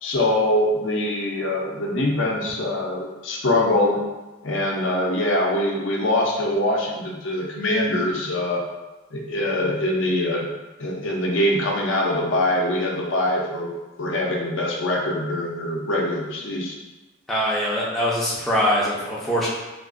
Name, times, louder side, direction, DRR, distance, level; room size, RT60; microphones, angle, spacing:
voice 1, 0.0-4.0 4.4-8.6 9.1-10.5 10.8-13.7 14.0-16.8, left 1 dB, 60° left, -1 dB, 0.5 m, -23 dB
voice 2, 17.3-19.5, equal, ahead, -8 dB, 0.4 m, -23 dB
3.5 x 2.4 x 2.4 m, 1.1 s
head